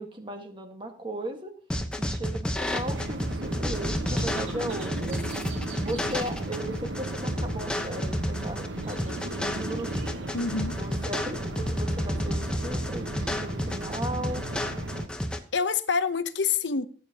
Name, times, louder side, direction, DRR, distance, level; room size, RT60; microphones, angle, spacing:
voice 1, 0.0-1.5 2.0-5.2 5.8-9.9 10.7-14.4, right 1 dB, 25° right, 1.4 m, -37 dB
sound 1, 1.7-15.4, equal, 5° left, 0.9 m, -31 dB
sound 2, 2.7-15.1, right 2 dB, 80° right, 1.1 m, -36 dB
voice 2, 10.3-10.8 15.5-16.9, left 5 dB, 70° left, 0.8 m, -26 dB
16.0 x 9.0 x 2.8 m
head